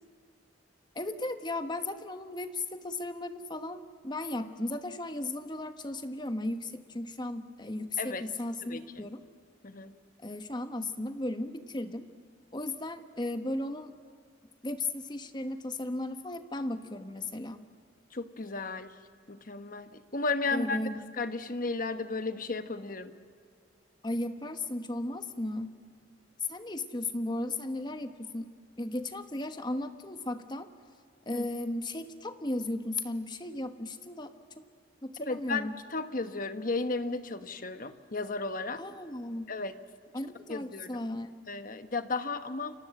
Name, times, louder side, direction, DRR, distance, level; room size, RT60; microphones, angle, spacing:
voice 1, 0.9-9.2 10.2-12.1 12.5-13.9 14.6-17.6 20.5-21.0 24.0-25.7 26.5-28.5 28.8-30.7 31.3-34.3 35.0-35.7 38.8-39.5 40.1-41.3, left 2 dB, 25° left, 8 dB, 1.3 m, -35 dB
voice 2, 8.7-9.1 9.6-10.0 18.1-18.9 19.3-20.8 21.1-23.1 31.3-31.5 35.2-38.8 39.5-39.7 40.5-41.1 41.5-42.7, left 3 dB, 45° left, 9 dB, 1.2 m, -34 dB
29.5 x 25.0 x 7.8 m, 2.1 s
head